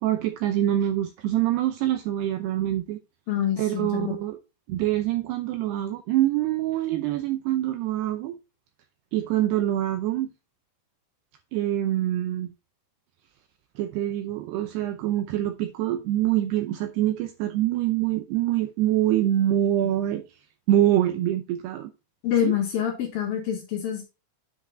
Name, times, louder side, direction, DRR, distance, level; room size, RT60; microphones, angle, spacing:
voice 1, 0.0-3.0 3.6-4.4 4.7-8.4 9.1-10.3 11.5-12.5 13.8-20.2 20.7-21.9 22.4-22.5, right 13 dB, 85° right, 2.3 m, -25 dB
voice 2, 3.3-4.2 22.2-24.1, left 9 dB, 60° left, 3.0 m, -26 dB
9.5 x 5.1 x 3.7 m
omnidirectional pair, 5.6 m